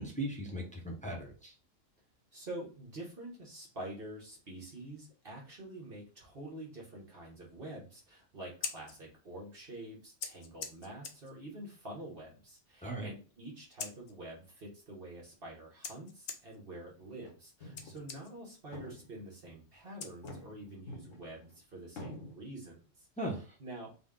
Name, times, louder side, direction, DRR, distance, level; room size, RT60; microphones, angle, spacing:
voice 1, 0.0-1.5 12.8-13.1 23.2-23.4, right 1 dB, 5° left, -1 dB, 0.7 m, -38 dB
voice 2, 2.3-23.1 23.6-23.9, right 1 dB, 50° right, -3 dB, 1.3 m, -47 dB
Scissors, 8.4-20.8, left 6 dB, 60° left, 0.7 m, -49 dB
sound 1, 17.0-17.3 17.6-18.0 18.4-18.5 18.7-19.5 20.1-21.5 22.0-22.3, left 1 dB, 80° left, 1.3 m, -47 dB
4.1 x 2.2 x 3.7 m, 0.37 s
omnidirectional pair, 1.3 m